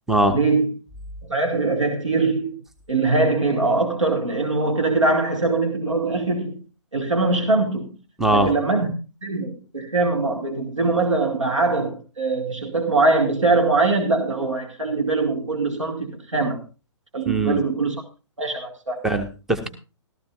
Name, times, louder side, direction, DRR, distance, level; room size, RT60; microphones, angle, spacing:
voice 1, 0.3-0.7 1.3-2.6 2.9-6.6 6.9-7.9 8.3-8.9 9.2-16.6 17.1-18.0 18.4-19.0, right 3 dB, 80° right, 2.0 m, -22 dB
voice 2, 8.2-8.5 17.3-17.6 19.0-19.7, right 2 dB, ahead, 0.8 m, -20 dB
15.5 x 13.5 x 2.5 m
figure-of-eight pair, 120°, 16 cm